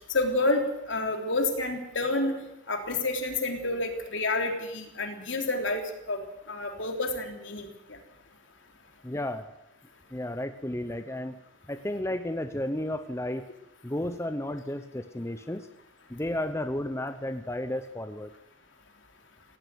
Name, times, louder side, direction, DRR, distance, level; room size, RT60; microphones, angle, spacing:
voice 1, 0.1-2.4 2.7-5.8 6.1-6.2 6.5-8.0, left 2 dB, 65° left, 4 dB, 3.5 m, -29 dB
voice 2, 9.0-9.5 10.1-11.4 11.7-13.5 13.8-15.7 16.1-18.3, left 1 dB, 15° left, 9 dB, 0.7 m, -33 dB
17.0 x 16.5 x 9.4 m, 0.89 s
head